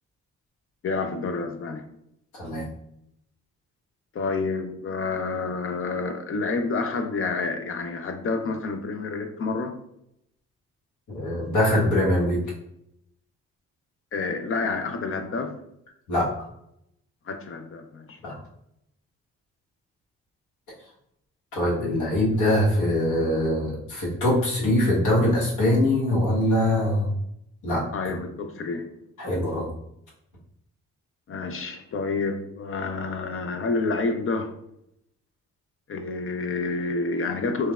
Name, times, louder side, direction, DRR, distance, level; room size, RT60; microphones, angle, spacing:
voice 1, 0.8-1.8 4.1-9.8 14.1-15.5 17.3-18.2 27.9-28.9 31.3-34.5 35.9-37.7, left 3 dB, 40° left, 6 dB, 0.5 m, -28 dB
voice 2, 11.1-12.4 16.1-16.3 18.2-18.4 21.5-27.1 27.6-27.8 29.2-29.7, left 1 dB, 65° left, -5 dB, 1.3 m, -23 dB
3.2 x 2.2 x 2.3 m, 0.78 s
supercardioid pair, 55°, 33 cm